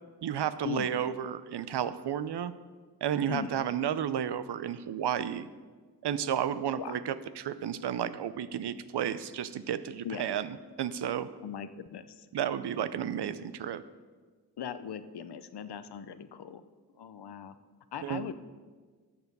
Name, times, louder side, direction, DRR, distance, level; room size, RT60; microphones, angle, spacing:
voice 1, 0.2-2.5 3.0-5.5 6.0-11.3 12.3-13.8 18.0-18.2, right 9 dB, 80° right, 14 dB, 0.6 m, -32 dB
voice 2, 3.3-3.6 6.8-6.9 10.0-10.3 11.4-12.3 14.6-16.6 17.0-17.5 17.9-18.3, left 8 dB, 75° left, 12 dB, 0.7 m, -39 dB
13.0 x 7.1 x 5.4 m, 1.5 s
cardioid pair, 40°, 40 cm